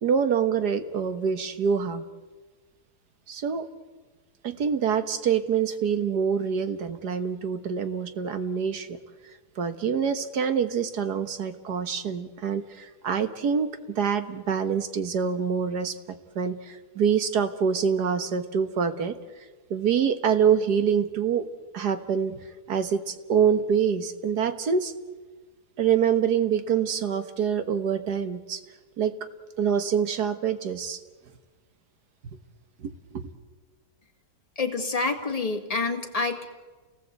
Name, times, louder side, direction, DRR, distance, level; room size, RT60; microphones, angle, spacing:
voice 1, 0.0-2.0 3.3-3.7 4.4-8.9 9.6-16.0 16.4-19.2 19.7-21.4 21.7-22.4 22.7-24.9 25.8-28.6 29.0-29.2 29.6-31.0 32.8-33.2, right 7 dB, 70° right, 9 dB, 1.8 m, -25 dB
voice 2, 34.6-36.5, left 3 dB, 20° left, 3 dB, 2.0 m, -27 dB
29.5 x 19.0 x 8.2 m, 1.3 s
omnidirectional pair, 1.8 m